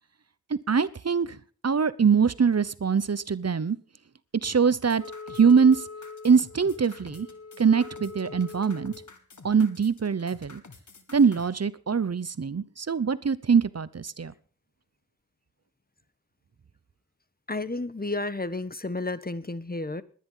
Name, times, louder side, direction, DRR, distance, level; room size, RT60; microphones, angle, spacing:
voice 1, 0.5-1.4 1.6-3.8 4.4-5.0 5.3-5.8 6.2-7.3 7.6-8.9 9.4-10.6 11.1-14.3, right 6 dB, 55° right, 0.8 m, -23 dB
sound 1, 4.7-11.5, left 4 dB, 75° left, 2.2 m, -50 dB
Wind instrument woodwind instrument, 5.0-9.1, left 4 dB, 55° left, 1.2 m, -43 dB
voice 2, 17.5-20.0, left 2 dB, 30° left, 1.2 m, -31 dB
20.0 x 10.5 x 5.6 m
cardioid pair, 40°, 30 cm